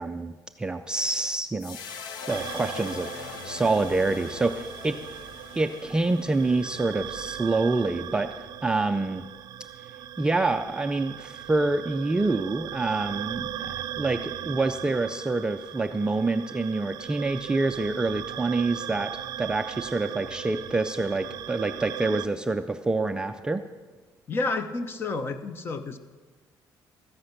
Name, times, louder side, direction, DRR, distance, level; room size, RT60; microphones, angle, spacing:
voice 1, 0.0-1.8 2.3-5.0 5.5-9.2 10.2-23.6, right 3 dB, 10° right, 7 dB, 0.3 m, -27 dB
sound 1, 1.6-8.0, left 6 dB, 65° left, 0.9 m, -42 dB
sound 2, 2.3-22.3, right 11 dB, 55° right, 0.6 m, -38 dB
voice 2, 24.3-26.0, left 3 dB, 30° left, 11 dB, 0.7 m, -30 dB
13.5 x 10.0 x 6.5 m, 1.3 s
cardioid pair, 175°, 8 cm